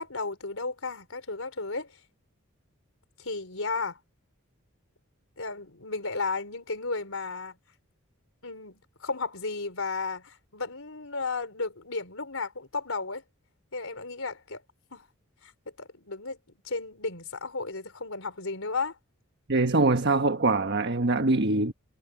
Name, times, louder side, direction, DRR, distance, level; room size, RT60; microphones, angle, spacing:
voice 1, 0.0-1.9 3.2-4.0 5.4-7.5 8.4-13.2 13.7-14.6 14.9-15.0 15.4-15.5 15.8-16.4 16.6-19.0, left 3 dB, 70° left, 4.7 m, -34 dB
voice 2, 19.5-21.7, right 2 dB, 55° right, 1.4 m, -23 dB
head